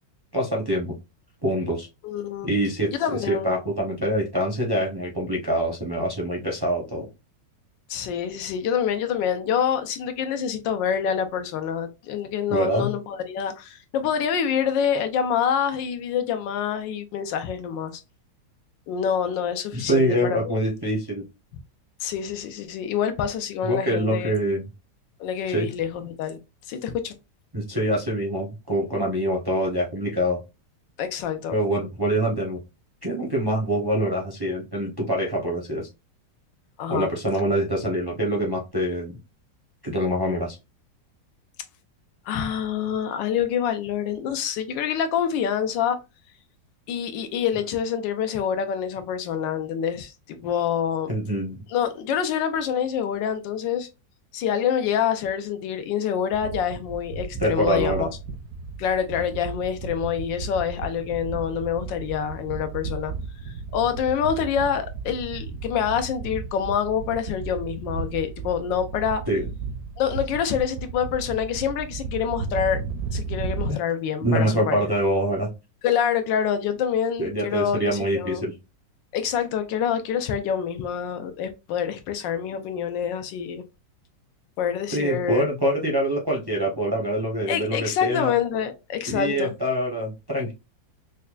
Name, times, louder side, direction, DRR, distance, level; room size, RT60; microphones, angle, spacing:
voice 1, 0.3-0.9 1.4-1.9 2.4-7.1 12.5-13.0 19.7-21.2 23.6-24.7 25.5-25.7 27.5-30.4 31.5-32.6 33.0-35.9 36.9-39.1 39.8-40.6 51.1-51.6 57.3-58.1 69.3-69.5 73.6-73.8 74.2-75.5 77.2-78.5 84.9-88.3 89.1-90.5, equal, 25° right, 0.4 m, -25 dB
voice 2, 2.0-2.5 3.0-3.5 7.9-18.0 18.9-20.6 22.0-24.3 25.2-26.4 26.7-27.1 31.0-31.5 36.8-37.1 42.3-46.0 46.9-51.1 51.7-53.9 54.3-58.1 58.8-63.1 63.5-69.2 70.0-72.8 73.1-74.8 75.8-78.4 79.1-83.6 84.6-85.5 87.5-89.5, left 8 dB, 85° left, 1.4 m, -26 dB
sound 1, 56.3-73.7, right 5 dB, 70° right, 1.2 m, -34 dB
5.3 x 2.2 x 2.4 m
omnidirectional pair, 1.9 m